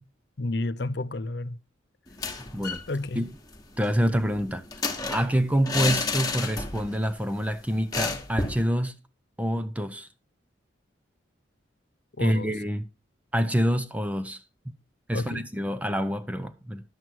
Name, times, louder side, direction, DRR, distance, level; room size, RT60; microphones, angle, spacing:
voice 1, 0.4-1.6 2.9-3.3 12.2-12.5 15.1-15.5, left 2 dB, 60° left, 0.6 m, -31 dB
sound 1, 2.1-2.9 3.2-3.3 3.5-7.0 7.3-7.4 7.9-8.7, left 3 dB, 20° left, 1.4 m, -31 dB
voice 2, 3.8-4.6 5.1-9.0 9.4-10.1 12.2-12.8 13.3-14.7 15.1-16.8, equal, 5° right, 0.5 m, -27 dB
11.0 x 7.8 x 4.5 m
head